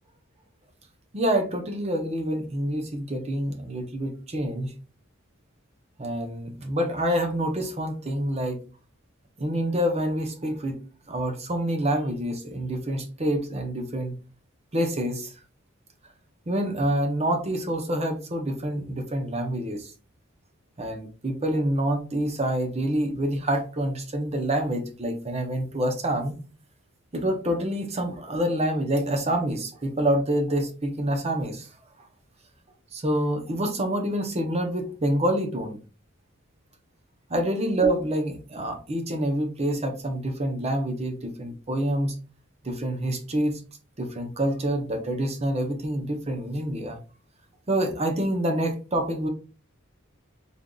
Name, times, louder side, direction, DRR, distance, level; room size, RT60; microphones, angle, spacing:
voice 1, 1.1-4.7 6.0-8.6 9.4-10.8 11.1-14.1 14.7-15.3 16.5-19.9 20.8-26.4 27.1-31.7 32.9-35.8 37.3-42.1 42.6-43.6 44.0-47.0 47.7-49.3, right 1 dB, 30° right, 6 dB, 0.7 m, -27 dB
3.7 x 3.4 x 2.3 m, 0.36 s
head